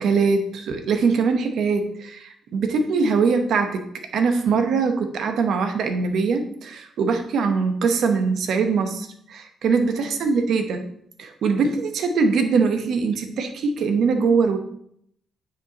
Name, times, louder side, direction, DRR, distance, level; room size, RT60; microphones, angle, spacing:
voice 1, 0.0-3.9 4.1-10.8 11.2-14.6, right 5 dB, 70° right, 6 dB, 1.1 m, -22 dB
9.8 x 5.6 x 3.0 m, 0.69 s
cardioid pair, 90°, 0 cm